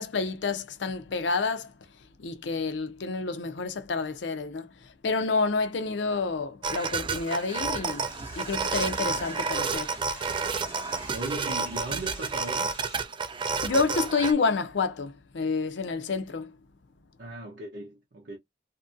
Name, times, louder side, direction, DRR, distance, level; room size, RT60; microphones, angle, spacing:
voice 1, 0.0-1.7 2.2-8.1 8.4-9.9 13.6-16.6, left 4 dB, 80° left, 0.5 m, -29 dB
sound 1, 6.6-14.3, right 5 dB, 25° right, 0.4 m, -30 dB
Door / Toilet flush, 7.8-13.0, left 2 dB, 15° left, 1.0 m, -47 dB
voice 2, 11.1-12.8 17.2-18.4, right 2 dB, 65° right, 0.7 m, -37 dB
2.7 x 2.6 x 2.5 m
head